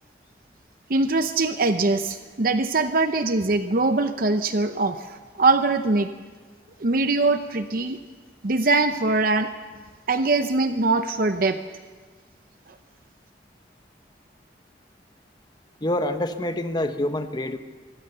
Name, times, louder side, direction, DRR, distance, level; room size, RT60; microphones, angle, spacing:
voice 1, 0.9-6.1 6.8-8.0 8.4-9.5 10.1-11.6, right 3 dB, 50° right, 8 dB, 0.8 m, -22 dB
voice 2, 15.8-17.6, left 1 dB, 25° left, 8 dB, 1.0 m, -26 dB
24.5 x 16.5 x 6.8 m, 1.4 s
head